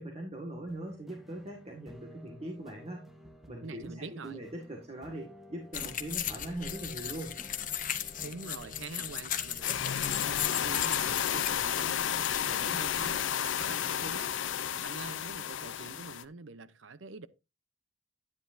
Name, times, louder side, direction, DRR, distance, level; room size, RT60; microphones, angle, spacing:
voice 1, 0.0-3.1 3.5-7.4, right 1 dB, 35° right, 1.8 m, -41 dB
sound 1, 0.7-10.4, equal, ahead, 1.1 m, -53 dB
voice 2, 3.6-4.4 8.2-17.3, right 4 dB, 90° right, 0.7 m, -46 dB
sound 2, 5.7-13.3, left 10 dB, 45° left, 1.0 m, -37 dB
sound 3, 9.6-16.2, left 9 dB, 80° left, 0.5 m, -32 dB
10.5 x 9.8 x 2.7 m
head